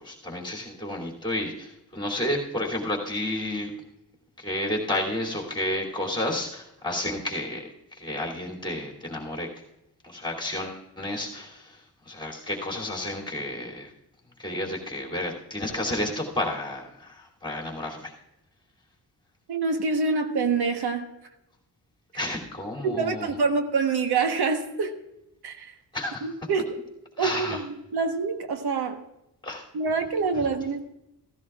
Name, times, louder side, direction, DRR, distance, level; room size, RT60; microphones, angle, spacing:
voice 1, 0.0-3.7 4.4-7.7 7.9-9.5 10.0-11.8 12.1-13.9 14.4-18.1 22.1-23.3 25.9-26.2 27.2-27.6 29.4-29.6, left 1 dB, 10° left, -2 dB, 2.8 m, -31 dB
voice 2, 19.5-21.1 22.8-25.0 25.4-25.8 26.2-26.8 27.2-29.0 29.7-30.8, right 4 dB, 70° right, 5 dB, 1.3 m, -26 dB
15.5 x 15.5 x 2.4 m, 0.88 s
wide cardioid pair, 155°, 40 cm